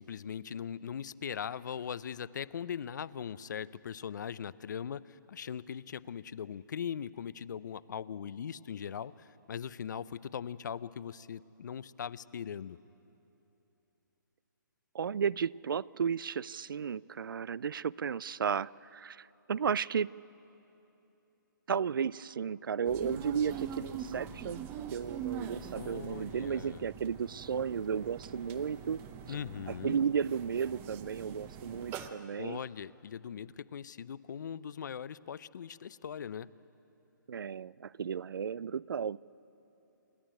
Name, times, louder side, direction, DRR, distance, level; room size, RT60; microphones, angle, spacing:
voice 1, 0.0-12.8 25.8-26.9 29.3-30.0 32.4-36.5, left 8 dB, 60° left, 18 dB, 0.5 m, -40 dB
voice 2, 14.9-20.1 21.7-29.0 29.3-29.4 29.7-32.6 37.3-39.2, right 7 dB, 80° right, 23 dB, 0.4 m, -34 dB
sound 1, 22.9-32.1, right 8 dB, 20° right, 0.7 m, -43 dB
27.5 x 11.5 x 9.0 m, 3.0 s
hypercardioid pair, 155°, 11 cm